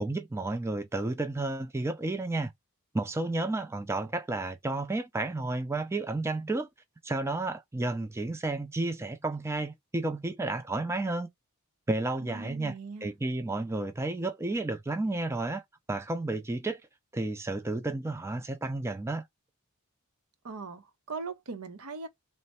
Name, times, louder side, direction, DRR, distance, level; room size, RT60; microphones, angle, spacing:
voice 1, 0.0-2.5 2.9-6.7 7.0-11.3 11.9-12.7 13.0-15.6 15.9-16.8 17.1-19.2, right 2 dB, 10° right, 0.3 m, -31 dB
voice 2, 12.2-13.1 20.4-22.1, right 4 dB, 80° right, 0.7 m, -40 dB
3.2 x 2.1 x 4.1 m
head